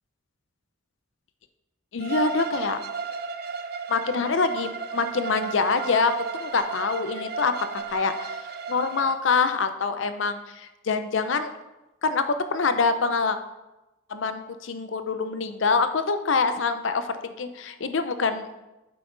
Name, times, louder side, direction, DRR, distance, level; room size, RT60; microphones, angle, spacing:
voice 1, 1.9-2.8 3.9-8.4 8.7-11.5 12.0-13.4 14.1-18.5, left 4 dB, 70° left, 10 dB, 0.6 m, -25 dB
Bowed string instrument, 2.0-9.2, right 5 dB, 50° right, 0.5 m, -34 dB
8.6 x 5.7 x 3.9 m, 1.0 s
head